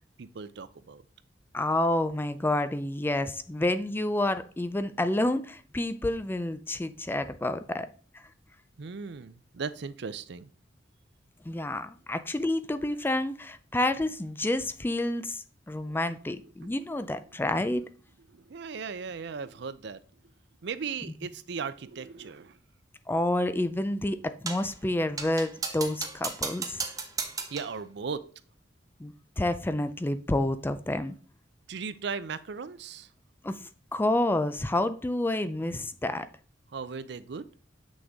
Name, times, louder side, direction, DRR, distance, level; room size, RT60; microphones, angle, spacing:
voice 1, 0.2-1.0 8.8-10.5 15.9-16.7 17.3-17.4 18.3-20.0 20.6-22.6 27.5-28.2 31.7-33.1 36.7-37.5, right 5 dB, 65° right, 0.5 m, -37 dB
voice 2, 1.5-7.9 11.5-17.8 23.1-26.8 29.0-31.2 33.4-33.6 33.9-36.3, left 1 dB, 10° left, 0.4 m, -29 dB
sound 1, 24.5-24.7 25.2-27.8, right 4 dB, 20° right, 0.9 m, -35 dB
7.8 x 6.2 x 3.5 m
head